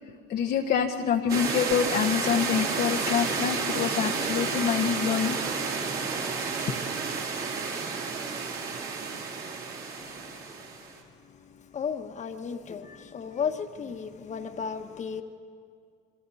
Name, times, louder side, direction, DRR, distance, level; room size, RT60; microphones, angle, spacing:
voice 1, 0.3-5.4, left 8 dB, 50° left, 1.1 m, -26 dB
sound 1, 1.3-11.0, right 5 dB, 50° right, 3.5 m, -31 dB
voice 2, 11.7-15.2, left 6 dB, 35° left, 1.4 m, -34 dB
28.5 x 22.5 x 4.2 m
supercardioid pair, 105°, 21 cm